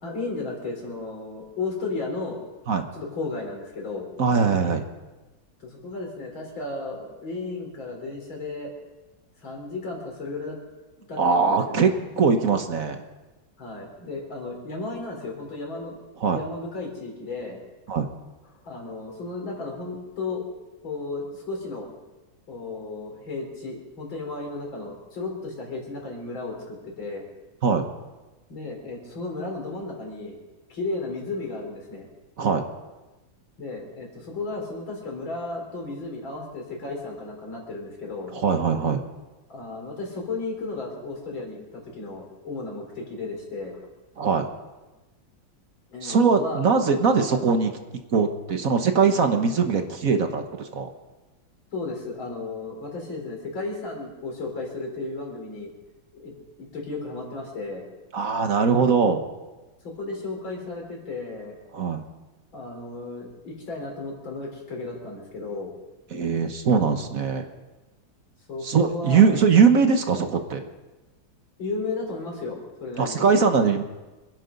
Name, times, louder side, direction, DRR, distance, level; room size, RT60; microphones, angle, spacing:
voice 1, 0.0-2.4 2.9-4.1 5.6-8.7 9.4-10.6 11.1-12.0 13.6-15.9 16.3-17.6 18.6-20.4 20.8-21.9 22.5-27.3 28.5-30.4 30.7-32.1 33.6-38.3 39.5-43.8 45.9-46.6 51.7-55.7 56.1-56.3 56.6-57.9 59.8-61.6 62.5-65.7 68.5-69.3 71.6-73.3, left 3 dB, 80° left, -1 dB, 4.6 m, -34 dB
voice 2, 4.2-4.8 11.2-11.9 12.2-13.0 16.2-16.4 17.9-18.1 27.6-27.8 32.4-32.6 38.3-39.0 44.2-44.5 46.0-47.7 48.1-50.9 58.1-59.2 61.7-62.0 66.1-67.5 68.6-70.6 73.0-73.8, right 5 dB, 50° right, 6 dB, 1.4 m, -21 dB
26.0 x 10.5 x 5.3 m, 1.1 s
omnidirectional pair, 2.1 m